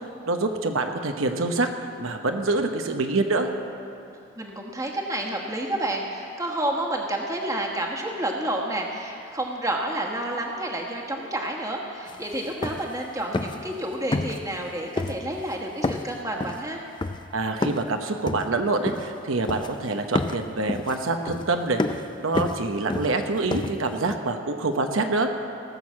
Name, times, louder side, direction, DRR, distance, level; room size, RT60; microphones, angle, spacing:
voice 1, 0.3-3.5 17.3-21.8 22.2-25.3, right 3 dB, 85° right, 5 dB, 0.9 m, -26 dB
voice 2, 4.4-16.8, right 1 dB, 15° right, 0 dB, 1.3 m, -30 dB
sound 1, 12.1-12.2 12.4-13.0 13.3-13.7 14.1-14.7 15.0-15.5 15.8-17.9 18.3-19.2 19.5-19.9 20.1-24.2, left 2 dB, 20° left, 0.3 m, -30 dB
18.5 x 6.4 x 7.3 m, 2.7 s
head